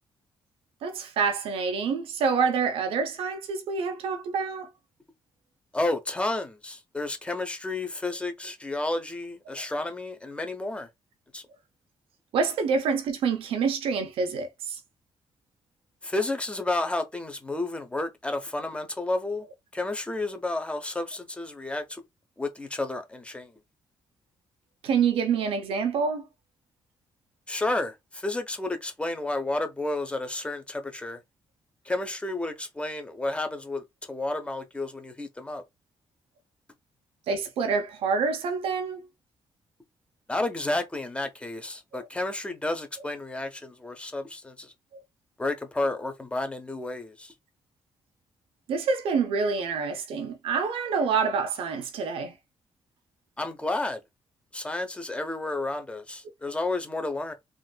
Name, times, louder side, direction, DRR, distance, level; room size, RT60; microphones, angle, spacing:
voice 1, 0.8-4.7 12.3-14.8 24.8-26.3 37.3-39.1 41.9-42.1 48.7-52.3, right 5 dB, 90° right, 0.7 m, -27 dB
voice 2, 5.7-10.9 11.3-11.4 16.0-19.5 19.7-22.0 22.4-23.5 27.5-31.2 31.8-35.6 40.3-44.7 45.4-47.3 53.4-54.0 54.5-57.3, left 2 dB, 10° left, 0.8 m, -31 dB
3.8 x 2.6 x 2.3 m
cardioid pair, 90°, 9 cm